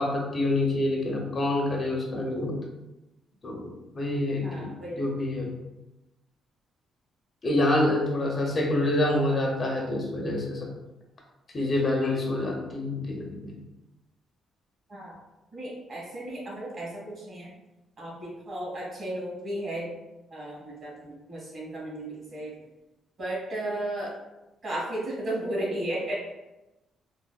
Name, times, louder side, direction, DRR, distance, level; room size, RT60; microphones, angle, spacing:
voice 1, 0.0-2.6 3.4-5.5 7.4-10.7 11.5-13.6, left 1 dB, 40° left, 0 dB, 0.6 m, -27 dB
voice 2, 4.4-5.0 14.9-15.2 15.5-17.5 18.0-19.9 20.3-22.5 23.2-24.1 24.6-26.2, right 1 dB, 45° right, -5 dB, 1.5 m, -34 dB
3.3 x 2.0 x 2.2 m, 1.0 s
cardioid pair, 90°, 0 cm